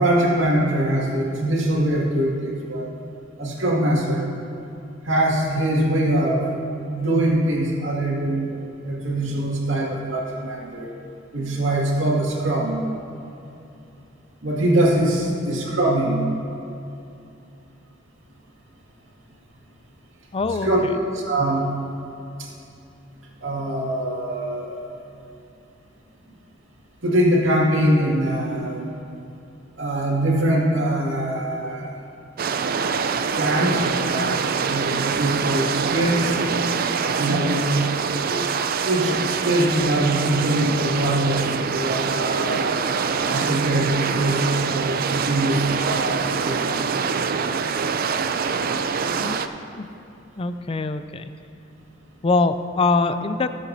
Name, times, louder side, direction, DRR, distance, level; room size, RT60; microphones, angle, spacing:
voice 1, 0.0-2.9 3.4-4.2 5.0-6.5 6.8-10.9 11.3-12.8 14.4-16.3 20.6-20.8 21.1-21.7 23.4-24.8 27.0-28.9 29.8-31.9 33.4-36.4 37.1-37.7 38.3-38.4 38.8-42.9 43.2-44.4 44.7-46.6, right 1 dB, 85° right, -3 dB, 2.1 m, -23 dB
voice 2, 20.3-20.9 37.3-37.5 49.2-49.4 49.7-49.9 50.4-51.3 52.2-53.5, left 3 dB, 30° left, 10 dB, 0.4 m, -24 dB
sound 1, 32.4-49.5, right 5 dB, 50° right, 0.4 m, -24 dB
21.0 x 7.3 x 2.7 m, 2.7 s
head